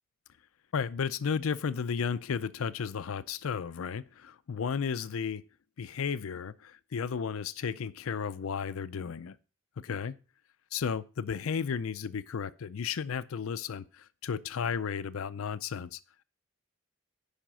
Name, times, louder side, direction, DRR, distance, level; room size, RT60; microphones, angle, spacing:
voice 1, 0.7-5.4 5.8-9.4 9.8-10.2 10.7-16.0, left 6 dB, 85° left, 0.5 m, -33 dB
10.0 x 5.1 x 6.1 m
head